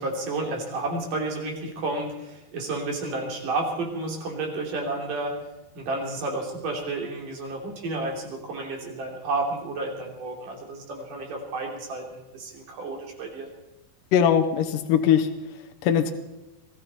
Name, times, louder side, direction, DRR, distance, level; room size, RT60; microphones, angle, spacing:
voice 1, 0.0-5.4 5.7-13.5, right 2 dB, 60° right, 1 dB, 4.4 m, -31 dB
voice 2, 14.1-16.1, left 8 dB, 75° left, 6 dB, 2.3 m, -22 dB
22.0 x 15.5 x 4.2 m, 0.99 s
omnidirectional pair, 4.3 m